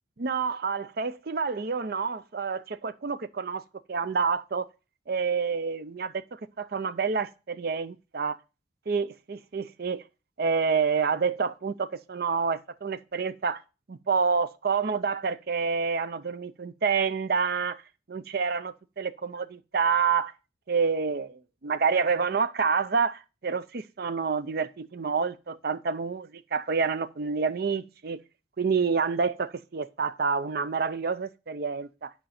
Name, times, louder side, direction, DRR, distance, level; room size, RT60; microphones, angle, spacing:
voice 1, 0.2-3.6 3.9-4.7 5.1-8.4 8.9-10.0 10.4-13.6 13.9-17.8 18.1-20.3 20.7-28.2 28.6-32.1, right 5 dB, 55° right, 0.5 m, -28 dB
10.5 x 5.2 x 4.2 m
head